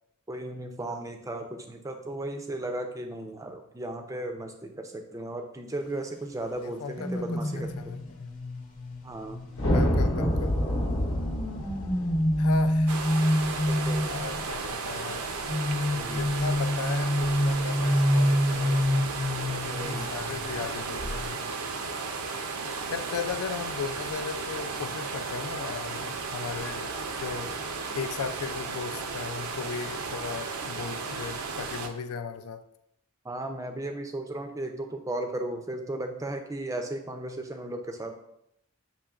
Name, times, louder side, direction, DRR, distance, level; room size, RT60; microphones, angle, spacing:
voice 1, 0.3-8.0 9.0-9.4 13.7-14.1 15.9-16.2 19.7-20.1 33.2-38.1, right 1 dB, 15° right, 5 dB, 0.3 m, -35 dB
voice 2, 6.6-7.2 7.6-8.3 9.6-10.6 12.4-13.2 14.1-15.3 16.0-19.1 19.7-21.5 22.5-32.6, left 5 dB, 85° left, 10 dB, 0.4 m, -37 dB
sound 1, 7.0-10.6 11.2-14.4 15.5-20.7 21.0-21.2, equal, 35° left, 0.7 m, -27 dB
sound 2, 9.6-14.0, equal, 70° left, 0.8 m, -27 dB
sound 3, 12.9-31.9, right 4 dB, 85° right, 0.5 m, -34 dB
7.4 x 2.9 x 2.4 m, 0.78 s
head